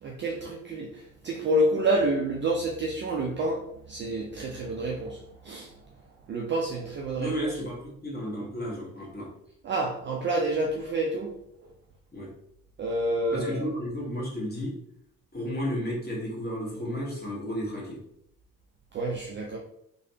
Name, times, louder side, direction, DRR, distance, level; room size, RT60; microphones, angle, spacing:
voice 1, 0.0-5.7 6.3-7.3 9.6-11.3 11.6-11.7 12.8-13.7 18.9-19.6, right 1 dB, 30° right, -1 dB, 0.4 m, -28 dB
voice 2, 7.2-7.8 8.0-9.3 12.1-12.3 13.3-14.7 15.3-18.0, equal, 20° left, -4 dB, 1.3 m, -32 dB
3.2 x 2.2 x 2.7 m, 0.77 s
figure-of-eight pair, 45°, 43 cm